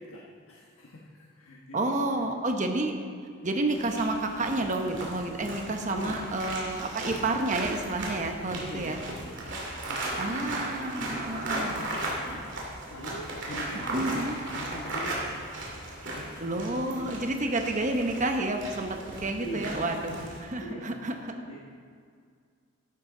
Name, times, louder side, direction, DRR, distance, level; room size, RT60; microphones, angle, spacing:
voice 1, 0.0-1.9 5.8-6.2 8.5-9.5 9.9-12.5 12.9-15.4 16.1-17.0 18.1-18.2 19.4-19.8 20.6-20.9 21.4-21.6, equal, 80° left, -3 dB, 1.2 m, -42 dB
voice 2, 1.7-2.9 3.4-9.0 10.2-11.8 13.9-14.3 16.4-21.1, right 2 dB, 35° right, 4 dB, 1.0 m, -30 dB
sound 1, 3.7-20.4, right 1 dB, 55° right, 2.7 m, -36 dB
13.5 x 11.5 x 3.9 m, 2.2 s
head